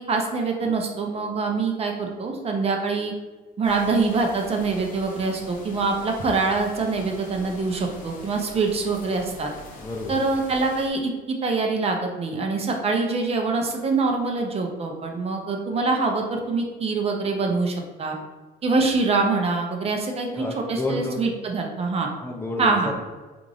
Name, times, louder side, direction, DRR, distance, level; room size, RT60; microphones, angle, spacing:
voice 1, 0.0-3.1 3.6-9.5 10.1-18.2 18.6-22.1 22.6-22.9, right 3 dB, 35° right, 2 dB, 0.6 m, -24 dB
sound 1, 3.6-10.9, left 3 dB, 50° left, 0.7 m, -43 dB
voice 2, 9.8-10.2 20.4-21.3 22.2-23.0, left 2 dB, 15° left, 0 dB, 0.5 m, -30 dB
3.2 x 2.5 x 3.9 m, 1.3 s
cardioid pair, 110°, 17 cm